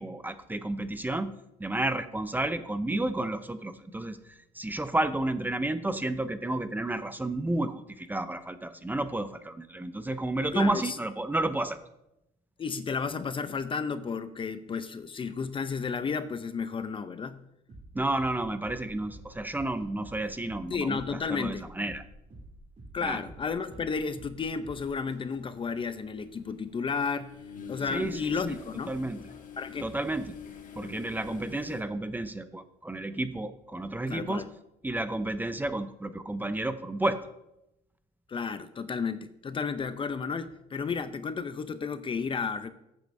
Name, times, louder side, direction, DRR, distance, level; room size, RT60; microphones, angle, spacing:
voice 1, 0.0-1.3 1.6-11.8 17.9-22.0 23.0-23.2 27.9-28.6 28.9-29.2 29.8-30.3 30.8-34.4 34.8-37.3, right 2 dB, 10° right, 11 dB, 0.6 m, -31 dB
voice 2, 10.5-10.9 12.6-17.4 20.7-21.7 22.9-27.4 27.7-28.9 29.6-29.9 34.1-34.4 38.3-42.7, left 5 dB, 30° left, 11 dB, 0.6 m, -32 dB
sound 1, 17.7-27.3, right 1 dB, 40° right, 2.7 m, -50 dB
sound 2, 25.3-25.4 27.2-31.8, left 7 dB, 50° left, 1.5 m, -45 dB
14.0 x 8.5 x 2.7 m, 0.86 s
cardioid pair, 110°, 17 cm